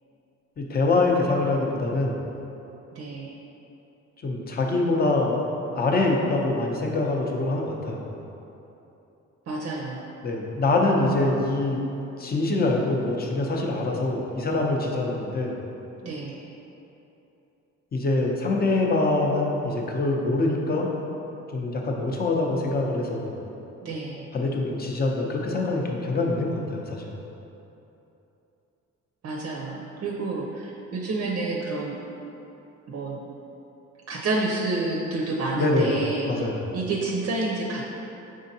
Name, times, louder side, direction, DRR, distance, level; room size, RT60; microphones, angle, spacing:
voice 1, 0.6-2.2 4.2-5.4 5.8-8.0 10.2-11.8 12.2-15.5 17.9-20.9 21.5-23.4 24.3-27.1 35.5-36.0 36.2-36.6, left 2 dB, 30° left, 0 dB, 0.6 m, -24 dB
voice 2, 2.9-3.4 9.5-10.0 16.0-16.4 23.8-24.3 29.2-32.0 32.9-33.2 34.1-36.5 36.7-37.8, right 3 dB, 50° right, -2 dB, 0.5 m, -29 dB
5.0 x 3.6 x 2.7 m, 3.0 s
cardioid pair, 90°, 30 cm